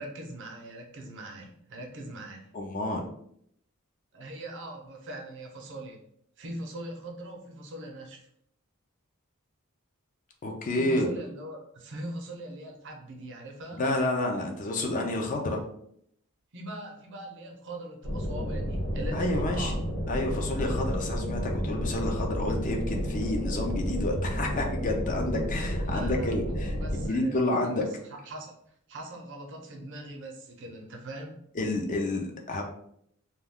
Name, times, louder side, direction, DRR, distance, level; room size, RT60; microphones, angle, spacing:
voice 1, 0.0-2.5 4.1-6.0 6.4-8.3 10.7-13.8 16.5-19.8 25.8-28.6 28.9-31.4, right 1 dB, 55° right, 1 dB, 0.6 m, -41 dB
voice 2, 2.5-3.0 10.4-11.1 13.8-15.6 19.1-19.7 20.1-27.8 31.6-32.6, left 2 dB, 35° left, 2 dB, 0.4 m, -29 dB
sound 1, 18.0-27.1, equal, 80° left, 0.9 m, -31 dB
2.2 x 2.2 x 3.4 m, 0.70 s
head